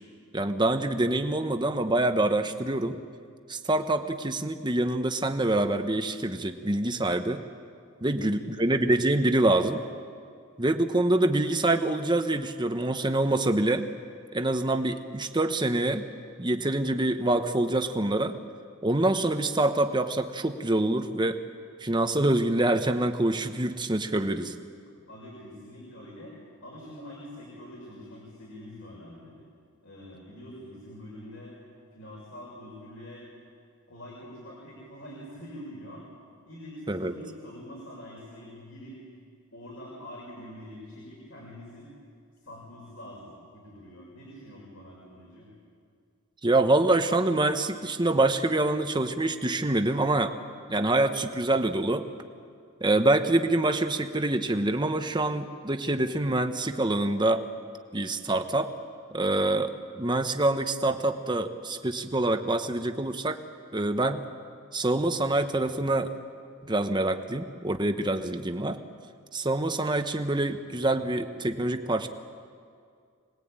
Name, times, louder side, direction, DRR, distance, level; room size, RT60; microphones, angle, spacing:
voice 1, 0.3-3.0 3.5-7.4 8.0-9.8 10.6-13.9 14.3-16.0 16.4-18.4 18.8-21.4 21.8-24.5 36.9-37.1 46.4-50.3 50.7-52.1 52.8-57.4 57.9-58.7 59.1-63.4 63.7-64.2 64.7-66.1 66.6-68.8 69.3-72.1, right 2 dB, 20° right, 7 dB, 1.1 m, -25 dB
voice 2, 8.1-8.7 25.1-26.3 26.6-29.4 29.8-31.6 31.9-33.3 33.9-36.0 36.5-39.0 39.5-41.9 42.4-45.5, left 1 dB, 65° left, -4 dB, 6.6 m, -45 dB
26.0 x 20.5 x 9.0 m, 2.2 s
head